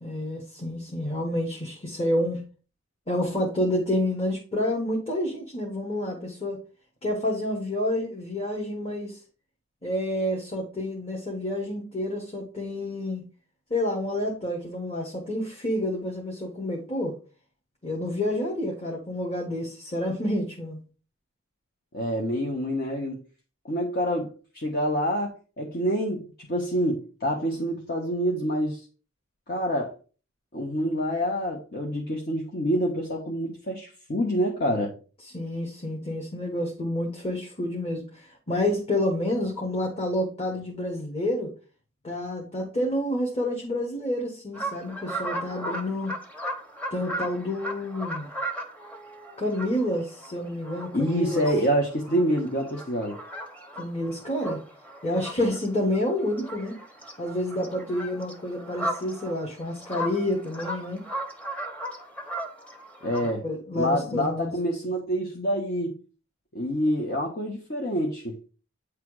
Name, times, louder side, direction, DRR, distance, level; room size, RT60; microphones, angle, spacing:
voice 1, 0.0-2.4 3.1-6.6 7.0-9.2 9.8-13.2 13.7-17.2 17.8-20.8 35.3-41.5 42.0-46.1 46.9-48.3 49.4-51.4 53.7-54.6 55.0-56.8 57.2-61.0 63.4-64.5, left 1 dB, 30° left, 1.4 m, -29 dB
voice 2, 21.9-23.2 23.6-28.8 29.5-29.9 30.5-34.9 50.9-53.2 63.0-63.4 63.7-65.9 66.5-68.4, equal, 50° left, 1.2 m, -27 dB
sound 1, 44.5-55.7 55.9-63.3, right 1 dB, 5° left, 0.9 m, -37 dB
8.7 x 3.4 x 4.8 m
head